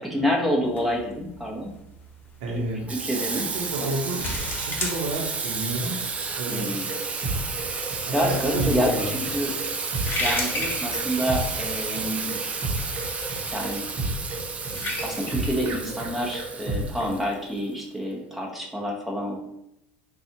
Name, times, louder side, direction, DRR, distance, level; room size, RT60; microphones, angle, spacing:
voice 1, 0.0-1.7 2.5-2.6 2.9-3.5 3.8-3.9 6.5-6.9 8.1-9.5 10.2-12.4 13.5-13.9 14.8-19.4, equal, ahead, -2 dB, 0.9 m, -28 dB
sound 1, 0.7-16.8, left 2 dB, 40° left, 0.9 m, -37 dB
voice 2, 2.4-2.9 3.5-4.2 4.5-6.0 6.3-7.0 8.0-9.1, right 2 dB, 70° right, 0 dB, 0.8 m, -30 dB
Water tap faucet / Sink (filling or washing), 2.9-17.6, right 4 dB, 25° right, 0.4 m, -32 dB
sound 2, 6.6-17.2, right 2 dB, 45° right, 0.9 m, -32 dB
4.0 x 2.4 x 2.9 m, 0.83 s
hypercardioid pair, 90°, 6 cm